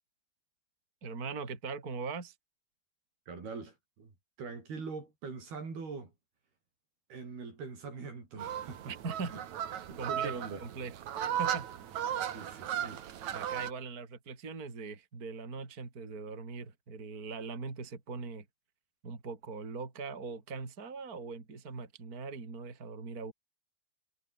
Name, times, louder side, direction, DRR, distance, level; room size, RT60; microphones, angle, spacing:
voice 1, 1.0-2.4 8.9-9.4 10.0-11.1 11.4-11.7 13.3-18.5 19.0-23.3, right 4 dB, 25° right, 3.5 m, -41 dB
voice 2, 3.3-4.1 4.4-6.1 7.1-8.9 9.3-9.4 9.9-10.7 12.2-13.0, right 4 dB, 70° right, 8.7 m, -43 dB
sound 1, 8.4-13.7, right 10 dB, 55° right, 2.6 m, -36 dB
omnidirectional pair, 4.6 m